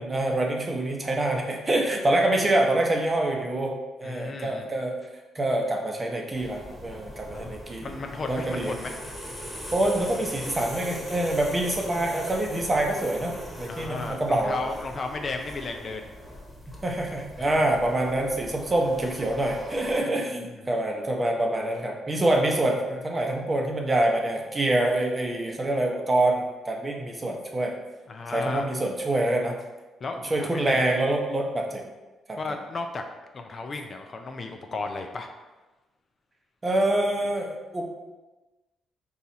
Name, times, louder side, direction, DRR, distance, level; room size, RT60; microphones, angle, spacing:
voice 1, 0.0-5.0 5.3-7.9 8.3-8.8 9.7-14.6 16.8-27.7 28.3-29.6 30.3-31.8 32.3-32.4 36.6-37.9, right 1 dB, 25° right, 1 dB, 0.7 m, -26 dB
voice 2, 4.0-4.7 7.3-7.5 7.8-8.9 13.7-16.1 17.4-17.5 20.5-20.6 28.1-28.7 30.0-30.9 32.4-33.0 33.3-35.3, left 3 dB, 40° left, 4 dB, 0.4 m, -34 dB
sound 1, 6.3-20.0, equal, 5° left, 1.0 m, -40 dB
4.1 x 2.4 x 4.0 m, 1.1 s
cardioid pair, 90°, 0 cm